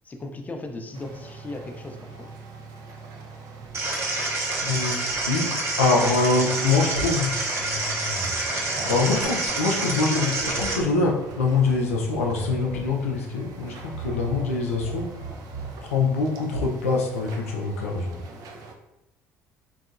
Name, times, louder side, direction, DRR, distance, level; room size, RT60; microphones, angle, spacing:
voice 1, 0.0-2.3, left 2 dB, 20° left, 4 dB, 0.4 m, -37 dB
sound 1, 0.9-18.7, right 4 dB, 55° right, 0.4 m, -42 dB
sound 2, 3.7-10.7, right 2 dB, 35° right, 0.8 m, -28 dB
voice 2, 4.6-5.0 5.3-5.5 5.8-7.3 8.9-15.1 15.8-18.2, left 3 dB, 85° left, -1 dB, 0.4 m, -24 dB
sound 3, 6.6-15.8, right 2 dB, 75° right, 0.8 m, -39 dB
2.6 x 2.2 x 2.4 m, 0.90 s
hypercardioid pair, 55°, 7 cm